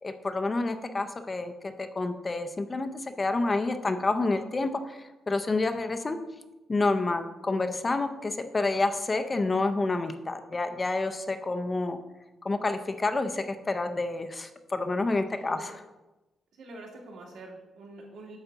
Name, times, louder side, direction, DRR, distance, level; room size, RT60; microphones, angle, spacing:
voice 1, 0.0-6.2 6.7-12.0 12.4-15.8, left 3 dB, 20° left, 8 dB, 0.5 m, -29 dB
voice 2, 15.4-15.7 16.6-18.4, right 2 dB, 85° right, -1 dB, 2.2 m, -45 dB
8.9 x 3.9 x 6.7 m, 1.1 s
wide cardioid pair, 175°, 0 cm